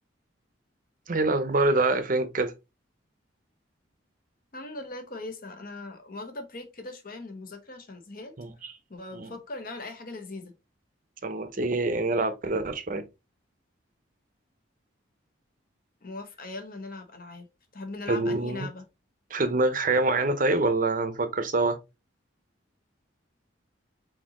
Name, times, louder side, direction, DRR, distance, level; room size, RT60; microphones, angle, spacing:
voice 1, 1.1-2.5 8.4-8.5 9.1-9.3 11.2-13.0 18.1-18.7 19.3-21.8, right 2 dB, 45° right, 0.7 m, -25 dB
voice 2, 4.5-8.3 8.6-10.5 16.0-17.5 17.7-18.8, left 2 dB, 45° left, 1.1 m, -40 dB
4.3 x 4.0 x 2.9 m
head